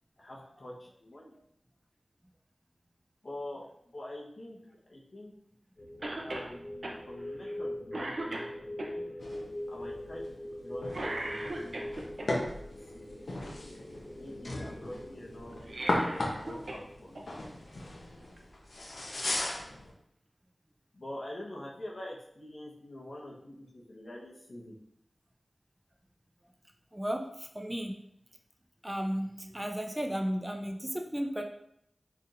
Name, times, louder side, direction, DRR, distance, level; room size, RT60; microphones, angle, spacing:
voice 1, 0.2-1.3 3.2-3.7 3.9-4.6 4.9-5.3 6.2-9.0 9.7-10.4 10.6-12.7 12.9-13.0 14.2-15.6 16.3-17.3 20.9-24.8, left 1 dB, 65° left, -3 dB, 1.1 m, -45 dB
sound 1, 5.8-18.0, left 1 dB, 30° left, 0.8 m, -43 dB
Cough, 6.0-6.5 6.8-7.0 7.5-7.6 7.9-8.9 10.9-12.3 15.5-16.8 17.1-17.2 18.4-18.5, right 1 dB, 70° right, 0.5 m, -37 dB
sound 2, 9.2-19.9, left 1 dB, 80° left, 0.8 m, -37 dB
voice 2, 26.9-28.0 28.8-31.4, equal, 15° right, 3 dB, 0.4 m, -34 dB
4.3 x 3.5 x 2.5 m, 0.74 s
wide cardioid pair, 55°, 0 cm